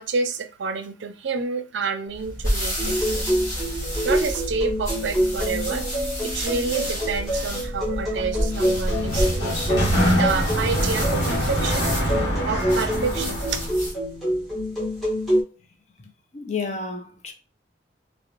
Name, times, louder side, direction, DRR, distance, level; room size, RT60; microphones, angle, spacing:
voice 1, 0.0-3.3 4.0-9.6 10.1-11.9 12.4-13.4, right 5 dB, 75° right, 0.4 m, -29 dB
sound 1, 2.1-14.0, equal, 20° left, 1.2 m, -30 dB
sound 2, 2.8-15.4, equal, ahead, 0.9 m, -27 dB
Sliding door, 8.6-13.7, equal, 65° left, 0.9 m, -25 dB
voice 2, 16.0-17.3, left 4 dB, 40° left, 0.5 m, -32 dB
2.4 x 2.0 x 2.9 m
head